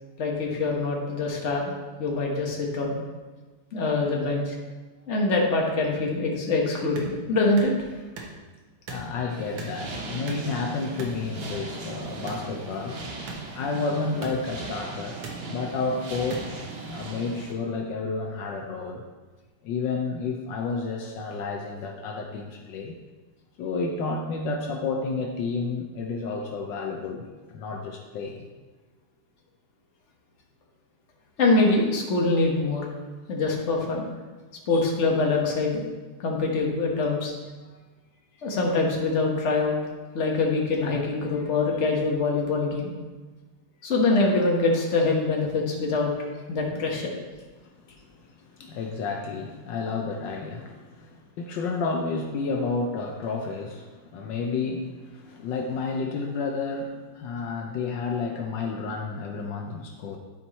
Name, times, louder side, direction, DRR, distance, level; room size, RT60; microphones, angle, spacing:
voice 1, 0.2-1.7 2.0-3.0 3.7-4.6 5.1-7.7 31.4-32.8 33.3-34.0 34.7-35.8 36.2-37.3 38.4-39.8 40.1-42.9 43.8-46.1 46.5-47.1, left 3 dB, 40° left, -1 dB, 1.5 m, -24 dB
sound 1, 7.0-7.1 7.6-7.7 8.1-8.3 8.9-9.1 9.6-9.8 10.3-10.5 11.0-11.2 12.3-12.5 13.3-13.4 14.2-14.3 15.2-15.4 16.3-16.4, right 4 dB, 85° right, 1.9 m, -37 dB
voice 2, 8.9-13.0 13.6-19.0 19.6-23.0 23.6-28.5 47.6-47.9 48.2-60.2, left 4 dB, 75° left, 2 dB, 1.4 m, -31 dB
sound 2, 9.3-17.5, right 3 dB, 45° right, 0.8 m, -38 dB
11.5 x 4.6 x 4.2 m, 1.3 s
omnidirectional pair, 2.0 m